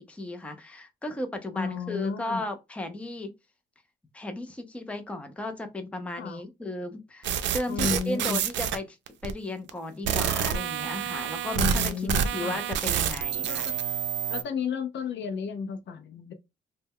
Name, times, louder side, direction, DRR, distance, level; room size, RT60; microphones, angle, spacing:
voice 1, 0.0-3.3 4.1-9.0 9.2-13.7, left 1 dB, 5° left, 0.5 m, -35 dB
voice 2, 1.5-2.5 6.2-6.4 7.7-8.4 11.5-12.6 13.5-13.8 14.3-16.3, left 6 dB, 65° left, 0.5 m, -32 dB
sound 1, 7.2-8.8 9.1-9.3 9.7-9.8 10.1-14.4, right 8 dB, 70° right, 0.4 m, -28 dB
2.1 x 2.1 x 3.4 m
cardioid pair, 90°, 20 cm